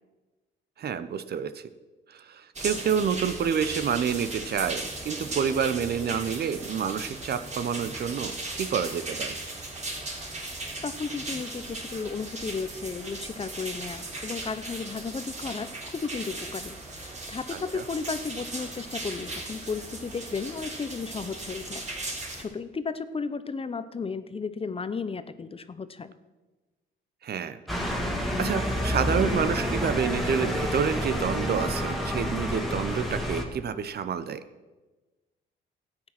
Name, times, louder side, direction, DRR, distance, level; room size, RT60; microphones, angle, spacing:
voice 1, 0.8-1.6 2.1-9.4 17.7-17.8 27.2-27.6 28.1-34.4, right 7 dB, 55° right, 12 dB, 0.8 m, -28 dB
sound 1, 2.5-22.4, right 2 dB, 35° right, 3.6 m, -37 dB
voice 2, 10.8-21.8 22.1-26.1, left 5 dB, 30° left, 12 dB, 0.7 m, -34 dB
sound 2, 27.7-33.4, equal, ahead, 2.1 m, -29 dB
13.0 x 8.9 x 5.9 m, 1.2 s
cardioid pair, 90°, 20 cm